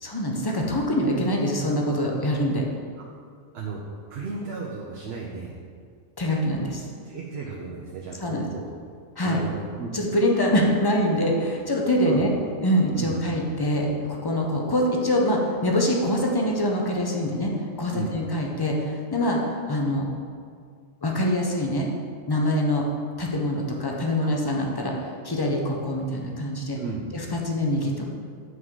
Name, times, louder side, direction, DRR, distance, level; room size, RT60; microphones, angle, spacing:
voice 1, 0.0-2.6 6.2-6.9 8.2-8.4 9.2-9.4 9.9-12.3 12.6-17.5 17.8-19.4 19.7-20.1 21.0-21.9 22.3-22.8 23.2-26.8 27.1-28.1, left 1 dB, 25° left, 0 dB, 0.5 m, -24 dB
voice 2, 4.1-5.5 7.0-8.7 9.2-9.9 12.0-12.3 13.0-13.3 17.9-18.2 24.2-24.4 26.8-27.0, right 4 dB, 60° right, -2 dB, 0.9 m, -34 dB
7.9 x 3.7 x 4.7 m, 2.2 s
omnidirectional pair, 1.4 m